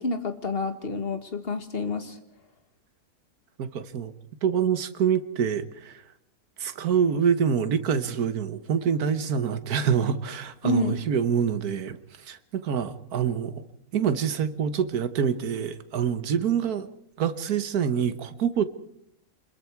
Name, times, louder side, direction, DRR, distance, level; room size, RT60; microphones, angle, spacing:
voice 1, 0.0-2.2 10.6-11.0, left 3 dB, 35° left, 8 dB, 1.9 m, -28 dB
voice 2, 3.6-4.1 4.4-6.0 6.6-12.0 12.3-13.6 13.9-16.9 17.2-18.7, right 7 dB, 70° right, 12 dB, 1.7 m, -26 dB
26.5 x 21.5 x 4.6 m, 0.72 s
omnidirectional pair, 1.7 m